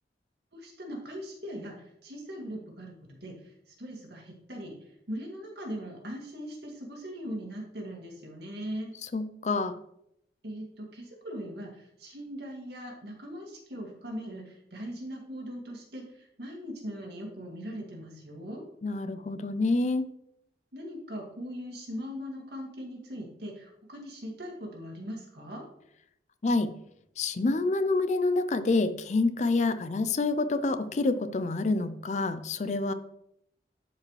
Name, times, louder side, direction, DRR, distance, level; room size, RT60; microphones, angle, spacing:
voice 1, 0.5-1.8 2.0-4.7 5.1-8.9 10.4-18.6 20.7-25.7, equal, 70° right, 0 dB, 2.0 m, -40 dB
voice 2, 9.0-9.8 18.8-20.1 26.4-26.7 27.2-32.9, left 3 dB, 40° left, 12 dB, 0.4 m, -27 dB
11.5 x 4.9 x 3.2 m, 0.77 s
head